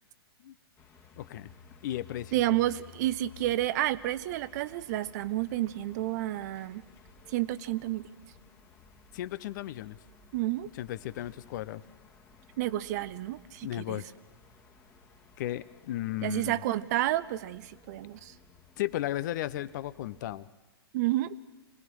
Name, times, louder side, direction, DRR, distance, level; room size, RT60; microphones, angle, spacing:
sound 1, 0.8-20.4, left 5 dB, 20° left, 1.7 m, -56 dB
voice 1, 1.2-1.5 1.8-2.3 9.1-10.0 10.7-11.8 13.6-14.1 15.4-16.6 18.8-20.5, left 14 dB, 45° left, 16 dB, 0.7 m, -35 dB
voice 2, 2.3-6.8 7.3-8.3 10.3-10.7 12.6-14.0 16.2-18.3 20.9-21.3, right 15 dB, 40° right, 17 dB, 0.7 m, -30 dB
26.5 x 19.0 x 6.2 m, 1.1 s
figure-of-eight pair, 115°, 13 cm